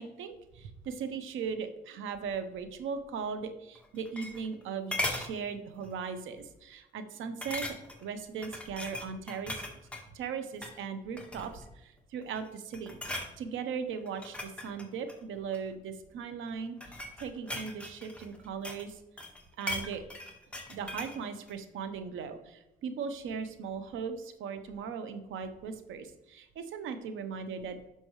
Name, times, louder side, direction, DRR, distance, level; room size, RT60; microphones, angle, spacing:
voice 1, 0.0-7.8 8.0-9.6 10.1-13.0 13.4-16.8 17.2-19.0 19.6-20.0 20.7-27.9, right 6 dB, 80° right, 9 dB, 1.0 m, -38 dB
sound 1, 3.8-4.6 4.9-5.3 5.8-6.1 6.4-6.5 7.4-8.1 8.4-10.1 10.5-10.8 11.2-11.7 12.2-12.5 12.7-13.3 14.1-15.7 16.5-18.9 19.2-21.2 21.5-21.6, left 1 dB, 5° left, 1.5 m, -38 dB
10.0 x 6.1 x 3.2 m, 0.94 s
cardioid pair, 90°, 20 cm